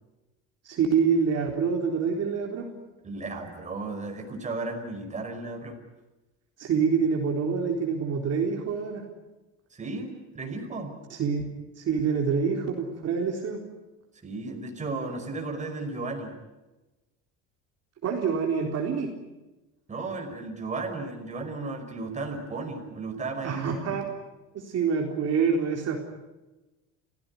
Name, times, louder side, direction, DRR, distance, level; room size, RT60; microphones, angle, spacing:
voice 1, 0.6-2.7 6.6-9.0 11.1-11.5 11.8-13.6 18.0-19.1 23.4-24.0 24.5-26.0, right 6 dB, 45° right, 1 dB, 4.0 m, -26 dB
voice 2, 3.0-5.8 9.7-10.9 14.2-16.3 19.9-23.8, right 3 dB, 20° right, 3 dB, 5.2 m, -34 dB
30.0 x 16.5 x 9.8 m, 1.1 s
cardioid pair, 130°, 34 cm